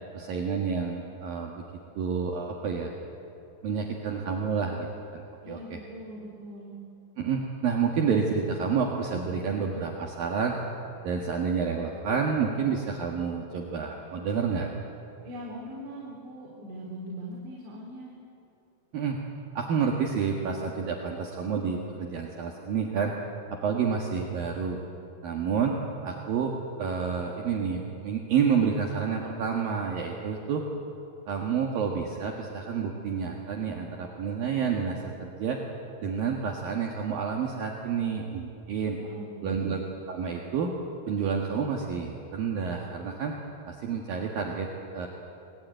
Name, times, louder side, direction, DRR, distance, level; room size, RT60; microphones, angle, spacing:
voice 1, 0.1-1.6 2.0-2.9 3.6-4.9 5.1-5.2 5.5-5.8 7.2-10.6 11.0-14.7 18.9-19.2 19.5-23.1 23.5-24.8 25.2-25.8 26.0-26.5 26.8-30.6 31.3-35.6 36.0-39.0 39.4-40.7 41.1-43.4 43.7-45.1, right 6 dB, 60° right, 0 dB, 3.2 m, -29 dB
voice 2, 5.4-6.7 15.2-18.1 39.0-39.7, equal, 80° right, -3 dB, 5.9 m, -41 dB
27.5 x 20.5 x 9.2 m, 2.8 s
omnidirectional pair, 5.1 m